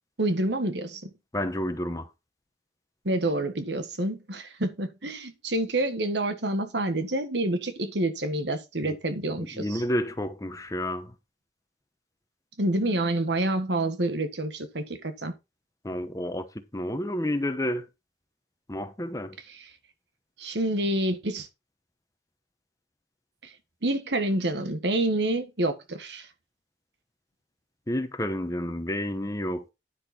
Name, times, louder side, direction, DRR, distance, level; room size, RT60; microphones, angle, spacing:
voice 1, 0.2-1.1 3.0-9.8 12.6-15.3 19.5-19.7 20.4-21.5 23.8-26.3, right 1 dB, 70° right, 1.5 m, -28 dB
voice 2, 1.3-2.0 8.8-9.0 9.4-11.1 15.8-16.5 16.7-17.8 18.7-19.3 27.9-29.7, left 1 dB, 20° left, 0.9 m, -30 dB
10.0 x 6.6 x 4.2 m
head